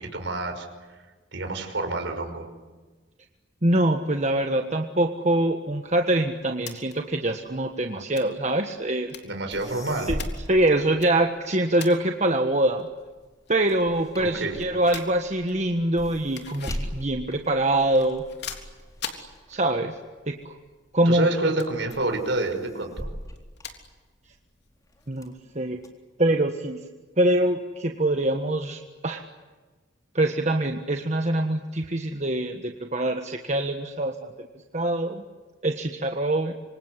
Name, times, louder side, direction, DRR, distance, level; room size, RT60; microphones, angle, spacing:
voice 1, 0.1-0.7 1.3-2.5 9.2-10.1 14.2-14.6 21.1-23.1, right 2 dB, 65° right, 5 dB, 5.7 m, -28 dB
voice 2, 3.6-9.1 10.1-10.2 10.5-12.9 13.5-18.2 19.1-20.0 20.3-20.5 20.9-21.3 25.1-25.8 26.2-26.8 27.2-29.2 30.1-34.5 34.7-35.2 35.6-36.5, right 1 dB, 35° right, 4 dB, 1.5 m, -24 dB
sound 1, 5.9-25.4, left 7 dB, 60° left, 3.5 m, -46 dB
sound 2, 9.2-9.3 9.5-11.6 12.1-20.7 21.2-21.6 21.9-24.4 24.9-25.9, equal, 20° left, 3.7 m, -39 dB
27.0 x 25.5 x 8.4 m, 1.3 s
head